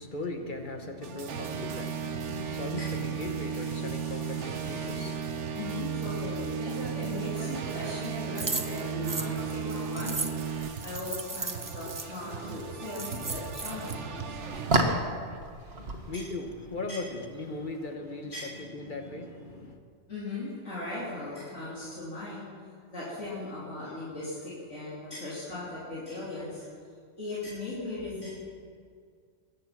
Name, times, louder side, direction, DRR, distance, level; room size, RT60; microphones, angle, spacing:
voice 1, 0.0-5.2 15.7-19.8, left 2 dB, 45° left, 1.3 m, -38 dB
sound 1, 1.0-15.4, right 7 dB, 75° right, 1.2 m, -35 dB
voice 2, 5.6-6.6 6.9-10.4 10.8-14.9 16.1-16.2 16.9-17.0 18.3-18.5 20.1-22.5 22.9-26.7 27.2-28.3, left 2 dB, 85° left, 3.7 m, -38 dB
sound 2, 6.5-17.8, right 2 dB, 55° right, 1.5 m, -36 dB
sound 3, 8.4-12.1 12.6-12.7 12.9-13.9, right 3 dB, 20° right, 0.6 m, -36 dB
21.5 x 8.8 x 6.0 m
omnidirectional pair, 1.2 m